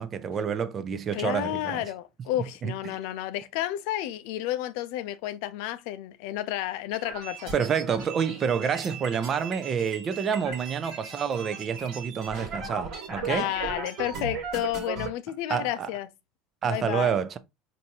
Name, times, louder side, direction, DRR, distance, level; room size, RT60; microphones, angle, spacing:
voice 1, 0.0-1.8 2.6-3.0 7.5-13.5 15.5-15.9 16.6-17.4, right 7 dB, 35° right, 0.5 m, -28 dB
voice 2, 1.1-7.5 13.3-16.1 16.7-17.1, left 14 dB, 70° left, 0.4 m, -31 dB
sound 1, 6.9-15.1, right 4 dB, 60° right, 1.4 m, -37 dB
4.1 x 2.6 x 2.8 m
supercardioid pair, 115°, 0 cm